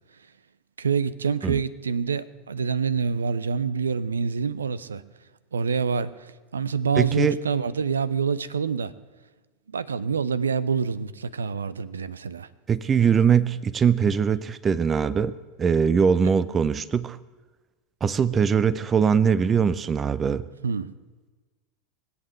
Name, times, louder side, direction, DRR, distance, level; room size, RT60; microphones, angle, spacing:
voice 1, 0.8-5.0 5.5-8.9 9.7-12.5 20.6-20.9, right 6 dB, 75° right, 0.6 m, -26 dB
voice 2, 7.0-7.4 12.7-17.2 18.0-20.5, right 6 dB, 25° right, 0.6 m, -22 dB
20.5 x 8.5 x 7.8 m
figure-of-eight pair, 80°, 0 cm